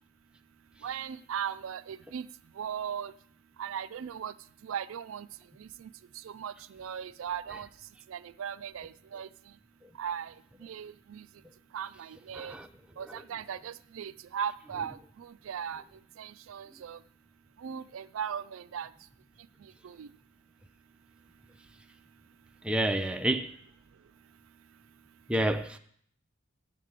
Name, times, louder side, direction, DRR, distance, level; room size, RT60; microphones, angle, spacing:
voice 1, 0.8-2.3 2.6-3.1 3.6-4.3 4.6-5.3 5.6-5.9 6.2-7.7 8.1-9.3 10.0-10.3 10.6-11.3 11.7-12.6 13.0-15.8 16.2-17.0 17.6-18.9 19.8-20.1, right 8 dB, 65° right, 0.3 m, -38 dB
voice 2, 12.3-12.7 13.0-13.2 22.6-23.5 25.3-25.8, right 1 dB, 5° right, 0.4 m, -29 dB
7.5 x 7.4 x 8.0 m
head